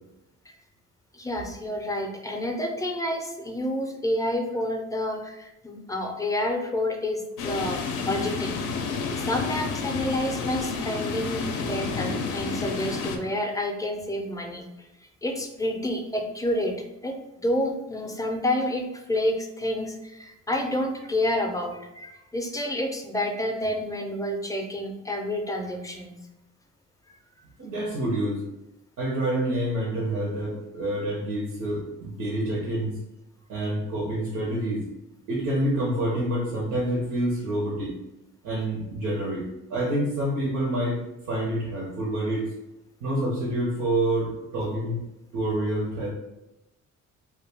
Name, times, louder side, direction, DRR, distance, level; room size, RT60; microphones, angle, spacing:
voice 1, 1.1-8.6 9.2-14.9 15.2-16.8 17.0-26.2, left 1 dB, 10° left, 2 dB, 0.4 m, -29 dB
sound 1, 7.4-13.2, left 5 dB, 85° left, 0.5 m, -30 dB
voice 2, 27.6-28.4 29.0-33.0 33.5-34.8 35.3-37.9 38.4-39.4 39.7-41.0 41.3-42.5 43.0-45.0 45.3-46.1, right 1 dB, 85° right, -3 dB, 0.8 m, -27 dB
2.3 x 2.2 x 3.4 m, 0.94 s
cardioid pair, 90°, 30 cm